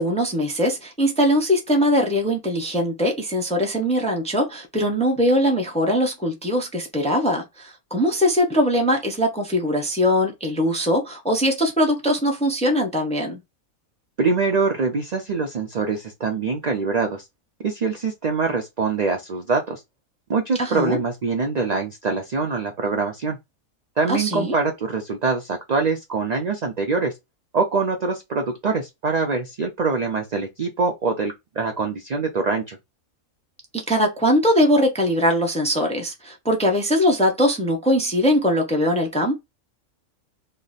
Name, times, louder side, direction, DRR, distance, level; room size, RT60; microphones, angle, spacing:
voice 1, 0.0-13.4 20.6-21.0 24.1-24.6 33.7-39.4, equal, 10° left, 0.4 m, -21 dB
voice 2, 14.2-17.3 17.6-19.8 20.3-23.4 24.0-27.1 27.5-32.8, right 4 dB, 70° right, 0.4 m, -24 dB
3.2 x 2.1 x 4.0 m
omnidirectional pair, 1.5 m